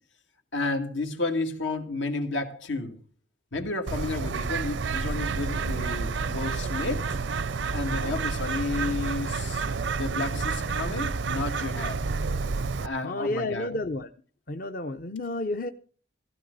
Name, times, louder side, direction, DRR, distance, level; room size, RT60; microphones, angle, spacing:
voice 1, 0.5-3.0 3.5-7.2 7.7-9.7 10.0-12.0 12.8-13.7, left 3 dB, 85° left, 2.5 m, -31 dB
Bird, 3.9-12.9, right 4 dB, 75° right, 0.6 m, -29 dB
voice 2, 13.0-14.1 14.5-15.7, left 2 dB, 45° left, 0.7 m, -31 dB
16.0 x 15.5 x 4.0 m
head